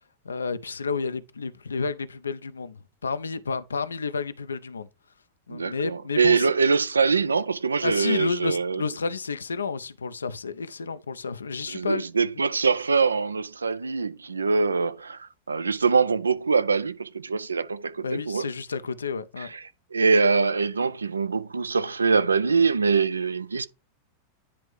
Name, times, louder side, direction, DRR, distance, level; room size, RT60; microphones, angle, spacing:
voice 1, 0.2-4.9 5.5-6.5 7.8-12.0 18.0-19.5, left 4 dB, 75° left, 0.4 m, -31 dB
voice 2, 5.5-8.8 11.7-18.5 19.4-19.6 19.9-23.7, right 4 dB, 75° right, 0.3 m, -24 dB
9.8 x 3.4 x 3.2 m
figure-of-eight pair, 90°, 0 cm